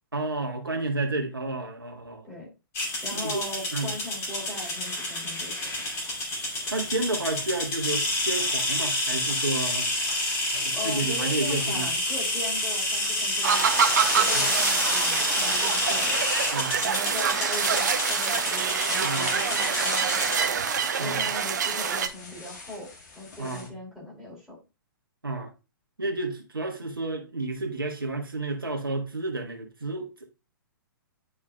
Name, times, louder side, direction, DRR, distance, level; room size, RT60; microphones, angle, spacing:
voice 1, 0.1-2.2 3.1-3.4 3.7-3.9 6.7-9.9 10.5-11.9 14.3-14.5 16.5-16.8 19.0-19.4 21.0-21.3 23.4-23.7 25.2-25.5 26.0-30.3, right 2 dB, 75° right, 1.3 m, -31 dB
sound 1, 2.7-20.4, left 1 dB, 20° left, 2.8 m, -29 dB
voice 2, 3.0-5.6 10.7-13.8 14.1-16.2 16.8-20.6 21.0-24.6, left 1 dB, ahead, 3.1 m, -39 dB
sound 2, 5.6-7.1 8.4-8.5 9.3-23.7, left 3 dB, 50° left, 1.6 m, -38 dB
sound 3, 13.4-22.1, right 7 dB, 50° right, 0.7 m, -26 dB
10.0 x 4.7 x 2.2 m
figure-of-eight pair, 115°, 12 cm